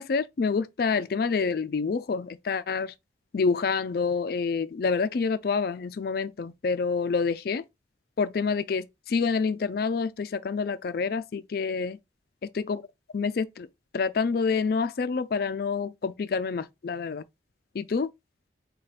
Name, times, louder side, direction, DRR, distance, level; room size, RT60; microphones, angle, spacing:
voice 1, 0.0-2.9 3.3-7.6 8.2-12.0 12.6-12.8 13.1-13.7 13.9-17.2 17.7-18.1, left 5 dB, 55° left, 0.4 m, -27 dB
5.0 x 2.2 x 4.0 m
head